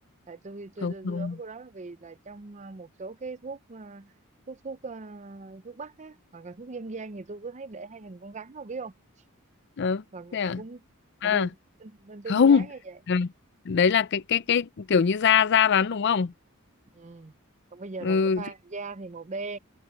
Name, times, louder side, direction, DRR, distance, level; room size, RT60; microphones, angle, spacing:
voice 1, 0.3-4.1 4.5-8.9 10.1-10.8 11.2-13.0 16.9-17.3 17.7-19.6, right 3 dB, 30° right, 0.6 m, -40 dB
voice 2, 0.8-1.3 9.8-10.0 10.3-10.6 11.2-11.5 12.3-12.6 13.1-13.3 13.7-16.3 18.0-18.4, left 6 dB, 50° left, 0.5 m, -22 dB
head